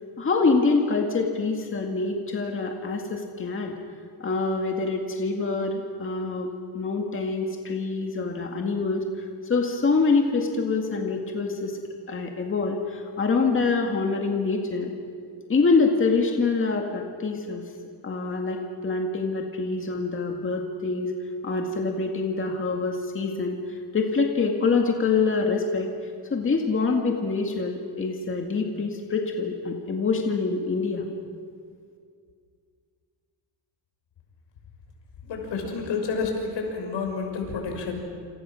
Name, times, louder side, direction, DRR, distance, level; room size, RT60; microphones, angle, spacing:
voice 1, 0.2-3.7 4.2-9.0 9.4-11.8 12.1-14.9 15.5-17.6 18.0-21.1 21.4-31.1, left 4 dB, 30° left, 2 dB, 2.1 m, -25 dB
voice 2, 35.2-37.9, left 4 dB, 85° left, 2 dB, 6.2 m, -29 dB
28.5 x 28.0 x 6.5 m, 2.2 s
wide cardioid pair, 170°, 42 cm